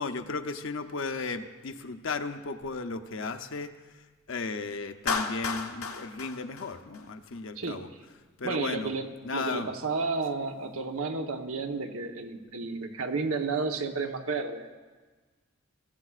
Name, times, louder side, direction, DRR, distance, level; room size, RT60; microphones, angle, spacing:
voice 1, 0.0-7.9 8.4-8.9 9.2-9.7, left 4 dB, 60° left, 8 dB, 0.7 m, -35 dB
Clapping, 5.1-7.4, left 5 dB, 80° left, 1.1 m, -33 dB
voice 2, 7.6-7.9 8.4-14.7, right 4 dB, 90° right, 5 dB, 1.1 m, -32 dB
21.5 x 15.0 x 2.4 m, 1.3 s
head